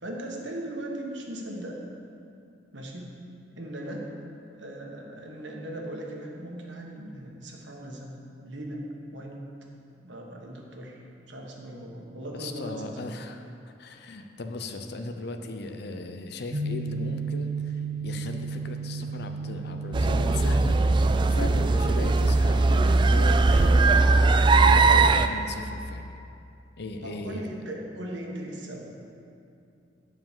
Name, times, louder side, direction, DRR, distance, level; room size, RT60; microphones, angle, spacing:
voice 1, 0.0-1.8 2.7-3.2 3.6-4.1 4.6-8.9 9.1-9.5 10.0-11.0 11.3-13.0 27.0-28.9, right 1 dB, 80° right, -1 dB, 1.4 m, -38 dB
voice 2, 12.3-13.5 13.8-26.0 26.8-27.6, left 2 dB, 60° left, 6 dB, 0.7 m, -37 dB
sound 1, 16.5-21.7, right 4 dB, 50° right, 0.8 m, -34 dB
sound 2, 19.9-25.3, right 3 dB, 25° right, 0.3 m, -20 dB
9.8 x 5.1 x 7.4 m, 2.6 s
head